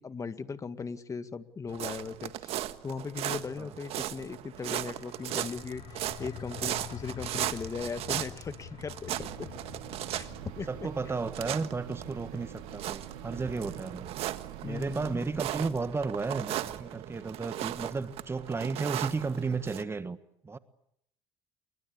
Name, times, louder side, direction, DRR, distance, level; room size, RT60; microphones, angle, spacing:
voice 1, 0.0-9.5 10.1-10.3 10.6-10.7 14.6-15.3, left 5 dB, 30° left, 10 dB, 2.0 m, -38 dB
sound 1, 1.7-19.8, right 13 dB, 65° right, 1.6 m, -37 dB
sound 2, 4.9-16.4, left 11 dB, 55° left, 1.6 m, -48 dB
sound 3, 9.1-15.2, right 12 dB, 85° right, 2.9 m, -45 dB
voice 2, 10.7-14.1 14.6-20.2 20.4-20.6, right 4 dB, 25° right, 11 dB, 1.5 m, -33 dB
28.5 x 23.5 x 8.3 m, 0.76 s
supercardioid pair, 80°, 11 cm